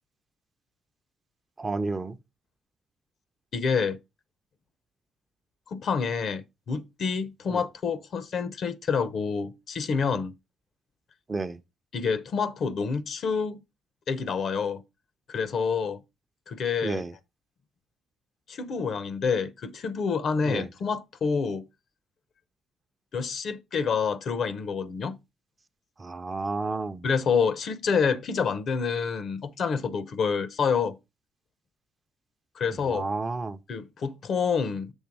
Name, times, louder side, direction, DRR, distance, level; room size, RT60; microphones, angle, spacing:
voice 1, 1.6-2.2 7.5-7.6 11.3-11.6 16.8-17.1 20.5-20.7 26.0-27.0 32.9-33.6, right 3 dB, 30° right, 0.5 m, -31 dB
voice 2, 3.5-4.0 5.7-10.3 11.9-13.6 14.1-14.8 15.3-16.0 16.5-17.0 18.5-21.7 23.1-25.2 27.0-31.0 32.6-33.1 33.7-34.9, left 5 dB, 60° left, 0.7 m, -28 dB
7.2 x 3.3 x 4.7 m
cardioid pair, 90°, 0 cm